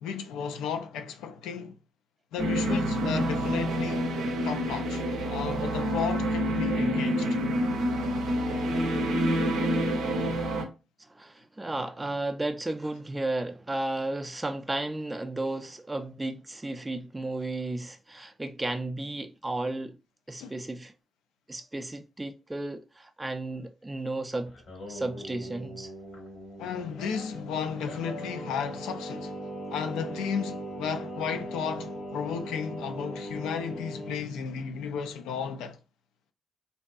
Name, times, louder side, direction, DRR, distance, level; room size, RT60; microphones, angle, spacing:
voice 1, 0.0-1.8 2.3-4.1 4.4-5.0 5.3-7.4 20.4-20.5 26.6-29.4 29.7-35.8, left 7 dB, 80° left, 0.3 m, -34 dB
sound 1, 2.4-10.6, equal, 80° right, 0.5 m, -27 dB
voice 2, 11.1-20.0 20.3-20.9 21.5-24.6 24.9-25.9, right 2 dB, 20° right, 0.3 m, -33 dB
Singing, 24.5-34.2, equal, 65° left, 1.0 m, -39 dB
2.7 x 2.2 x 2.3 m
hypercardioid pair, 45°, 0 cm